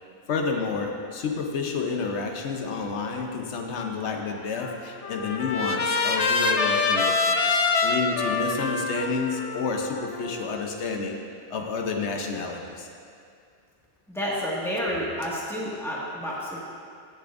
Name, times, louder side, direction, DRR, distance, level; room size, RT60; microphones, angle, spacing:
voice 1, 0.3-7.4 7.8-11.2 11.5-12.9, left 4 dB, 90° left, 2 dB, 1.1 m, -29 dB
Trumpet, 4.6-10.8, left 4 dB, 45° left, 0.5 m, -26 dB
voice 2, 14.1-16.6, equal, ahead, -7 dB, 1.7 m, -30 dB
16.5 x 6.8 x 2.6 m, 2.3 s
omnidirectional pair, 1.1 m